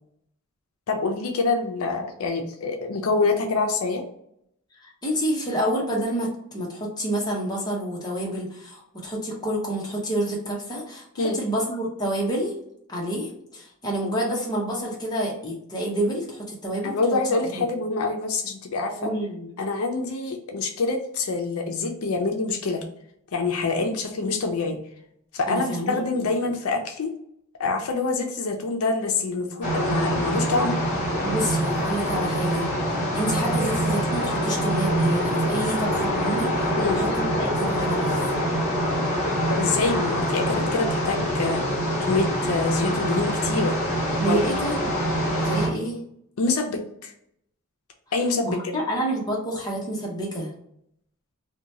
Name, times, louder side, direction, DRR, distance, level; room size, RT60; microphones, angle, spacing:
voice 1, 0.9-4.0 11.2-11.4 16.8-19.1 19.6-22.8 23.3-24.8 25.3-27.2 27.6-30.8 36.8-37.0 39.5-41.6 42.0-43.8 44.3-44.6 46.4-47.1 48.1-48.7, left 3 dB, 75° left, 3 dB, 0.5 m, -26 dB
voice 2, 4.8-12.5 12.9-17.0 17.5-17.7 19.0-19.5 25.5-26.3 31.2-32.7 33.1-38.2 44.2-45.0 45.4-46.0 48.5-50.5, right 1 dB, 20° left, -3 dB, 0.8 m, -28 dB
sound 1, 29.6-45.7, equal, 35° left, 1.4 m, -25 dB
2.8 x 2.2 x 2.7 m, 0.74 s
head